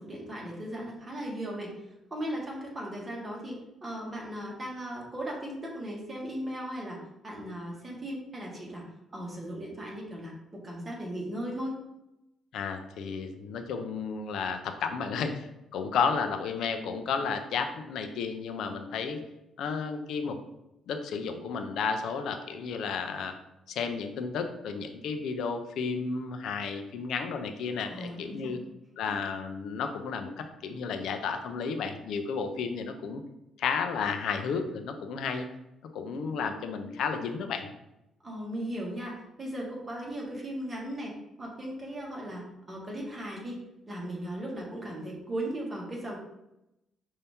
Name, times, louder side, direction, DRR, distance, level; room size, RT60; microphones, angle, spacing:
voice 1, 0.0-1.8 2.1-7.0 7.2-8.8 9.1-11.8 27.9-28.6 29.1-29.2 38.2-41.1 41.4-43.6 43.9-46.2, right 1 dB, 30° right, -3 dB, 1.6 m, -37 dB
voice 2, 12.5-15.5 15.7-19.2 19.6-20.4 20.9-23.3 23.7-28.6 29.0-33.2 33.6-35.5 35.9-37.7, left 5 dB, 75° left, 6 dB, 0.5 m, -32 dB
5.5 x 2.7 x 3.5 m, 0.88 s
cardioid pair, 90°, 0 cm